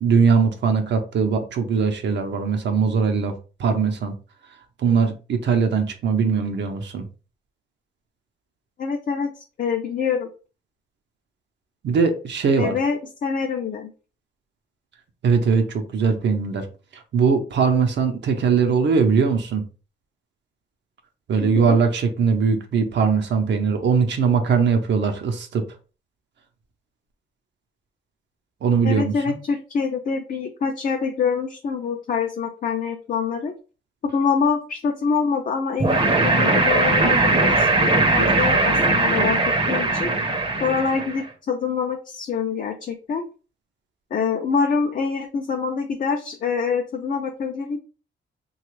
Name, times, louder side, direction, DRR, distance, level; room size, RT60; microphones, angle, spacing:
voice 1, 0.0-4.1 4.8-7.1 11.8-12.8 15.2-16.7 16.9-19.6 21.3-25.7 28.6-29.4, right 5 dB, 70° right, 5 dB, 0.6 m, -21 dB
voice 2, 8.8-10.3 12.6-13.9 21.4-21.8 28.8-33.5 34.1-40.1 40.6-43.2 44.1-47.8, left 5 dB, 45° left, 3 dB, 0.4 m, -25 dB
sound 1, 35.8-41.2, right 2 dB, 25° right, 0.6 m, -19 dB
3.1 x 2.3 x 3.1 m, 0.35 s
cardioid pair, 110°, 19 cm